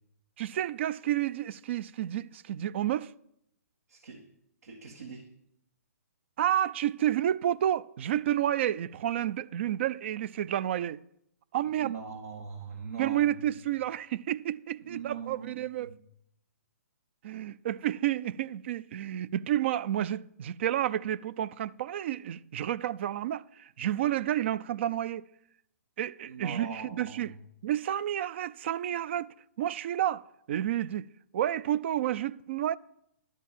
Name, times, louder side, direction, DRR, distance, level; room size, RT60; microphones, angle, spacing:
voice 1, 0.4-3.1 6.4-11.0 11.5-11.9 13.0-15.9 17.2-25.2 26.0-27.3 27.6-29.3 29.6-31.1 31.3-32.8, right 12 dB, 45° right, 0.4 m, -30 dB
voice 2, 3.9-4.2 4.6-5.3 11.8-13.2 14.8-15.9 26.3-27.3, right 6 dB, 80° right, 1.8 m, -41 dB
11.5 x 4.6 x 7.3 m
hypercardioid pair, 140°, 9 cm